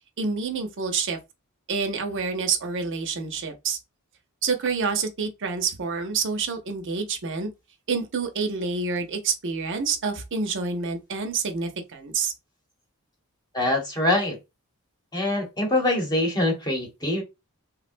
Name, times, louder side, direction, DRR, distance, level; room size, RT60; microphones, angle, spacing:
voice 1, 0.2-1.2 1.7-3.8 4.4-7.5 7.9-12.3, right 5 dB, 55° right, 0.7 m, -28 dB
voice 2, 13.5-14.4 15.1-17.2, left 1 dB, 20° left, 1.0 m, -24 dB
3.5 x 2.2 x 2.5 m
head